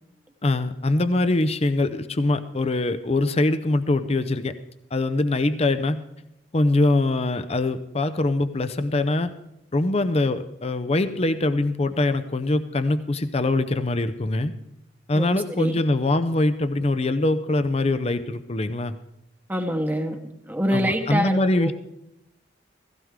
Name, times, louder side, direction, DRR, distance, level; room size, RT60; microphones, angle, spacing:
voice 1, 0.4-4.5 4.9-6.0 6.5-9.3 9.7-14.5 15.1-18.9 20.7-21.7, left 2 dB, 30° left, 11 dB, 0.6 m, -23 dB
voice 2, 15.1-15.7 19.5-21.7, equal, 10° right, 4 dB, 1.0 m, -26 dB
16.5 x 15.5 x 3.7 m, 0.84 s
head